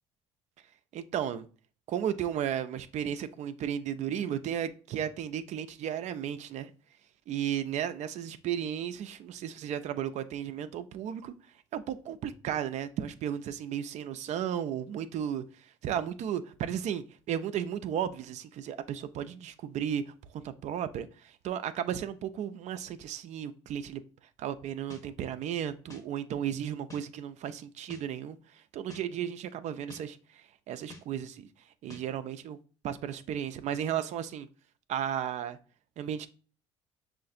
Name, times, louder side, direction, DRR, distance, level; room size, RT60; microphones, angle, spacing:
voice 1, 0.9-1.5 1.9-6.7 7.3-11.3 11.7-15.4 15.8-20.0 20.3-24.0 24.4-31.5 31.8-32.6 32.8-34.5 34.9-35.6 36.0-36.3, right 9 dB, 55° right, 0.4 m, -34 dB
sound 1, 24.9-25.0 25.9-26.0 26.9-27.0 27.9-28.0 28.9-29.0 29.9-30.0 30.9-31.0 31.9-32.0, left 2 dB, 25° left, 0.8 m, -47 dB
5.4 x 2.5 x 2.5 m
hypercardioid pair, 60°, 14 cm